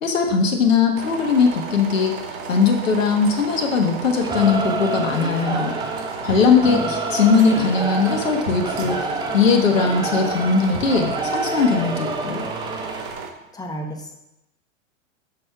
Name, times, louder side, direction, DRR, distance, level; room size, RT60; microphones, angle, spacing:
voice 1, 0.0-5.7 6.2-9.0 9.3-12.5, left 5 dB, 80° left, 3 dB, 1.3 m, -19 dB
sound 1, 0.9-13.3, right 5 dB, 60° right, 1.4 m, -34 dB
Singing / Musical instrument, 4.2-13.1, right 3 dB, 10° right, 0.9 m, -28 dB
sound 2, 6.3-7.9 8.4-10.0 10.6-12.3 12.9-13.0, equal, 80° right, 2.0 m, -39 dB
voice 2, 13.5-14.1, left 2 dB, 10° left, 3 dB, 1.3 m, -30 dB
6.5 x 6.4 x 5.8 m, 0.88 s
hypercardioid pair, 100°, 38 cm